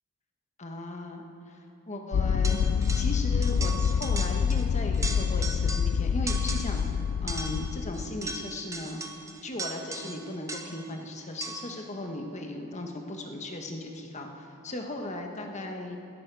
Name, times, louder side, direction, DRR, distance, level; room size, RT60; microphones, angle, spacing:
voice 1, 0.6-1.2 1.9-2.6 2.9-6.9 7.2-9.0 9.4-16.0, left 1 dB, 35° left, 3 dB, 1.3 m, -37 dB
sound 1, 2.1-8.3, left 7 dB, 65° left, 0.3 m, -27 dB
sound 2, 2.4-3.2 3.4-4.7 4.9-6.0 6.3-6.9 7.3-10.9 11.4-11.8, right 3 dB, 15° right, 0.9 m, -38 dB
17.0 x 14.0 x 4.8 m, 2.6 s
head